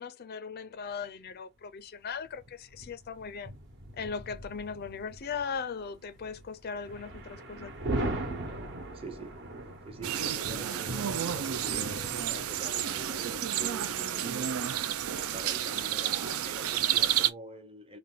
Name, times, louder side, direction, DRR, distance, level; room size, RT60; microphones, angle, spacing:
voice 1, 0.0-3.5 4.0-7.8, left 6 dB, 45° left, 0.5 m, -38 dB
sound 1, 0.9-1.0 2.2-17.2, right 1 dB, 60° right, 1.1 m, -41 dB
voice 2, 8.5-14.8 15.2-18.0, right 2 dB, 25° right, 0.6 m, -46 dB
sound 2, 10.0-17.3, right 10 dB, 80° right, 0.5 m, -31 dB
3.3 x 2.5 x 3.7 m
head